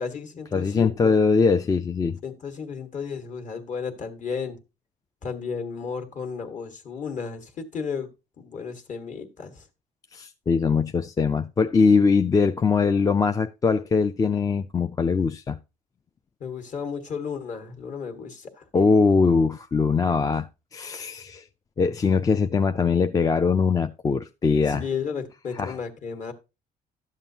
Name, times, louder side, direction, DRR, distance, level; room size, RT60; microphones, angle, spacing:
voice 1, 0.0-1.1 2.2-4.6 5.2-8.1 8.4-9.7 16.4-18.6 24.7-26.3, left 6 dB, 45° left, 1.5 m, -33 dB
voice 2, 0.5-2.2 10.1-15.6 18.7-20.5 20.7-21.4 21.8-24.8 25.5-25.8, left 5 dB, 20° left, 0.4 m, -22 dB
12.0 x 7.2 x 2.8 m
cardioid pair, 110°, 17 cm